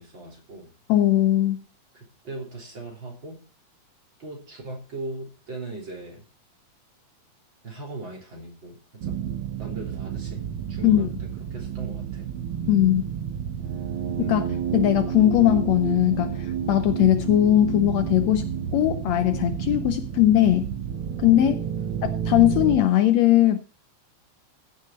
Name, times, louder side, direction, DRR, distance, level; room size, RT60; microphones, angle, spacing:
voice 1, 0.0-0.7 1.9-3.4 4.2-6.2 7.6-8.8 9.0-9.2 9.6-10.4 10.7-12.3 14.2-14.3, right 2 dB, 40° right, 4.1 m, -38 dB
voice 2, 0.9-1.6 10.8-11.1 12.7-13.0 14.3-14.5 14.7-20.7 21.2-21.7 22.0-23.6, left 13 dB, 75° left, 1.8 m, -20 dB
sound 1, 9.0-22.8, right 8 dB, 85° right, 1.1 m, -30 dB
15.5 x 6.7 x 4.3 m
omnidirectional pair, 3.5 m